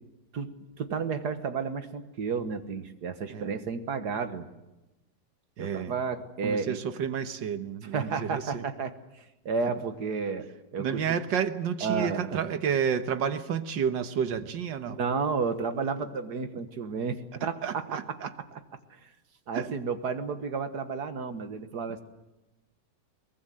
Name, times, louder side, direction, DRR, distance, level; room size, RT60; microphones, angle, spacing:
voice 1, 0.3-4.5 5.6-6.8 7.9-10.5 10.7-11.1 11.8-12.4 14.9-18.3 18.9-19.1 19.5-22.0, right 5 dB, 65° right, 9 dB, 1.9 m, -32 dB
voice 2, 5.6-5.9 6.4-8.6 10.8-15.0 17.6-18.3 19.5-19.7, right 7 dB, 85° right, 10 dB, 1.9 m, -30 dB
22.5 x 20.0 x 7.7 m, 0.98 s
omnidirectional pair, 1.9 m